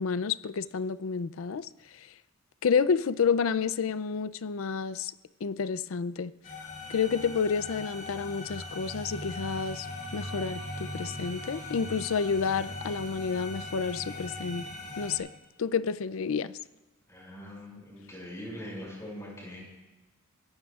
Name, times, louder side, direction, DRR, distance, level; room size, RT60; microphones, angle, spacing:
voice 1, 0.0-1.7 1.9-2.1 2.6-5.1 5.4-6.3 6.9-9.9 10.1-14.7 15.0-15.3 15.6-16.6, left 6 dB, 75° left, 0.4 m, -29 dB
sound 1, 6.4-15.2, left 1 dB, 40° left, 4.9 m, -40 dB
voice 2, 17.1-19.6, equal, 15° left, 5.8 m, -42 dB
29.0 x 15.0 x 2.4 m
head